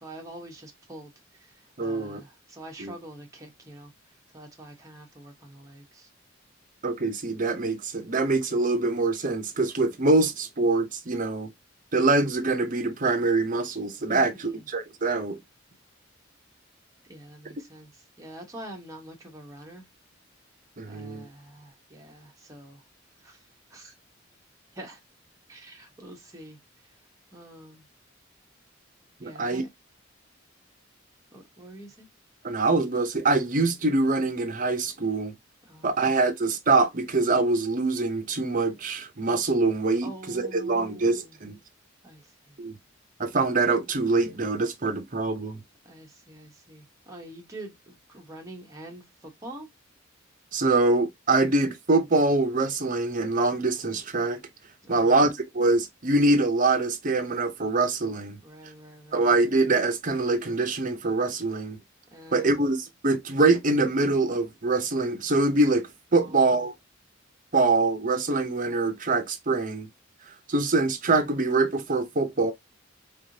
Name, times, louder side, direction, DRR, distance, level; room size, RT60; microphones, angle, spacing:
voice 1, 0.0-1.1 1.8-3.9 4.3-6.1 14.1-14.6 17.1-17.9 18.2-19.8 20.8-22.8 23.2-23.4 23.7-23.9 24.7-25.0 25.5-26.6 27.3-27.8 29.2-29.7 31.3-32.1 35.7-36.1 40.0-41.3 42.0-42.2 45.8-49.0 49.4-49.7 54.8-55.1 58.4-59.3 62.1-62.6 66.2-66.4, right 1 dB, 15° right, 1.1 m, -45 dB
voice 2, 1.8-2.2 2.8-2.9 6.8-11.5 11.9-15.4 20.8-21.3 29.2-29.6 32.4-35.3 35.8-41.6 42.6-42.7 43.2-45.6 50.5-54.4 54.9-58.4 59.1-61.8 62.3-66.7 67.5-69.9 70.5-72.5, right 3 dB, 40° right, 0.7 m, -24 dB
3.6 x 3.5 x 2.7 m
head